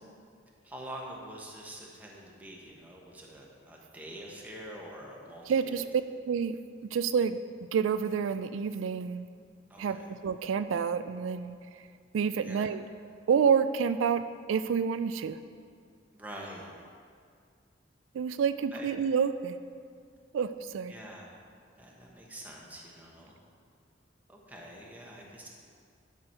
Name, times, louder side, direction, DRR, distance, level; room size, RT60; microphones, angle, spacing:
voice 1, 0.6-5.8 9.7-10.1 12.4-12.6 16.1-16.7 18.7-18.9 20.9-21.3 21.8-23.3 24.3-25.5, right 1 dB, 10° right, -3 dB, 1.2 m, -45 dB
voice 2, 5.5-5.8 6.3-6.6 6.8-7.4 7.7-9.3 9.8-11.9 12.1-12.8 13.3-15.4 18.1-19.6 20.3-20.9, right 6 dB, 90° right, 11 dB, 0.3 m, -28 dB
11.0 x 6.0 x 4.5 m, 2.2 s
head